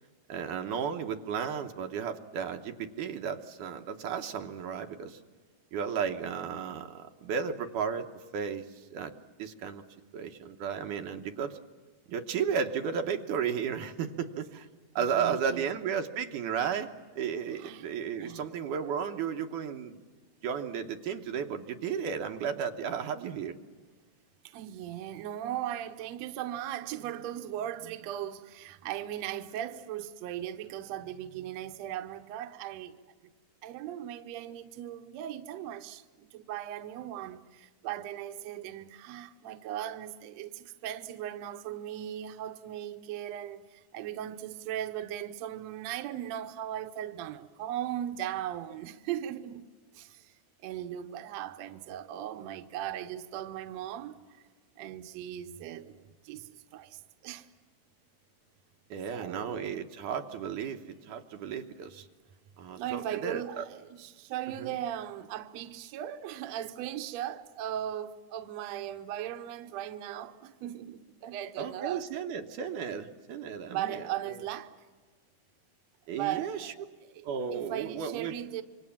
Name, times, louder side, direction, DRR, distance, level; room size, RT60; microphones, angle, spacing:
voice 1, 0.3-5.2 5.7-8.1 8.3-8.6 8.9-9.1 9.4-9.8 10.1-11.6 12.1-14.7 15.0-20.0 20.4-23.6 58.9-62.1 62.6-63.7 64.6-64.7 71.6-74.0 76.1-76.7 77.2-78.4, right 7 dB, 85° right, 2.6 m, -34 dB
voice 2, 15.0-15.8 17.5-18.5 24.4-33.0 33.6-49.7 49.9-50.4 50.6-54.2 54.8-57.5 59.1-59.7 62.7-72.2 73.7-74.7 76.1-77.3 77.5-78.6, right 11 dB, 70° right, 1.9 m, -38 dB
27.0 x 24.5 x 7.3 m
omnidirectional pair, 3.6 m